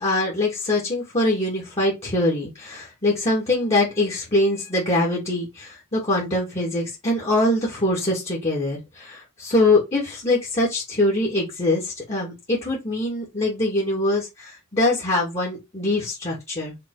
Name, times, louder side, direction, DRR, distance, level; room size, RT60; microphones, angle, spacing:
voice 1, 0.0-16.8, left 2 dB, 30° left, 2.3 m, -23 dB
5.9 x 3.4 x 4.8 m
head